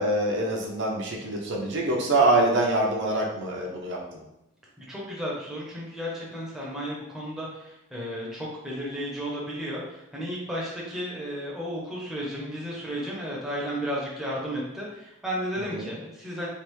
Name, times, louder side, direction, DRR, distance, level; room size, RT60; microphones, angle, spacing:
voice 1, 0.0-4.0 15.7-15.9, right 2 dB, 55° right, -1 dB, 0.5 m, -25 dB
voice 2, 4.8-16.5, equal, ahead, -5 dB, 0.6 m, -33 dB
3.3 x 2.4 x 3.0 m, 0.89 s
head